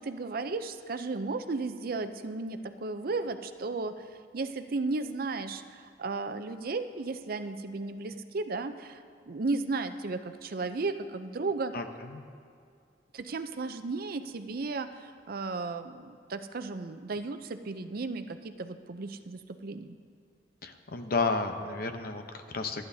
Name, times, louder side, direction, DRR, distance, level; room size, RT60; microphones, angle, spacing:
voice 1, 0.0-4.1 4.3-11.7 13.1-20.0, right 3 dB, 55° right, 9 dB, 0.6 m, -34 dB
voice 2, 11.7-12.2 20.6-22.9, left 3 dB, 55° left, 6 dB, 0.8 m, -32 dB
27.0 x 9.4 x 2.8 m, 2.3 s
head